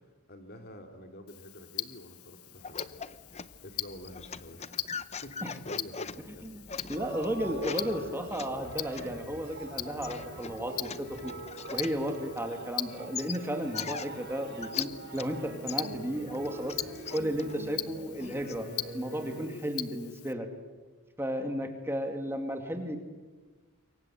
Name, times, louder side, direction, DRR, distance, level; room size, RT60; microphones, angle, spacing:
voice 1, 0.3-3.0 3.6-4.7 5.2-7.0 7.6-8.2, left 1 dB, 45° left, 6 dB, 2.7 m, -48 dB
Tick-tock, 1.3-20.3, left 14 dB, 90° left, 1.0 m, -42 dB
sound 1, 2.6-12.8 13.1-15.3 15.7-18.6, left 5 dB, 30° left, 0.8 m, -43 dB
voice 2, 6.4-11.3 11.7-16.8 17.1-18.7 18.9-20.5 21.2-23.0, equal, 10° right, 5 dB, 2.5 m, -34 dB
sound 2, 6.9-19.5, right 2 dB, 50° right, 4.4 m, -44 dB
27.5 x 23.0 x 7.9 m, 1.3 s
head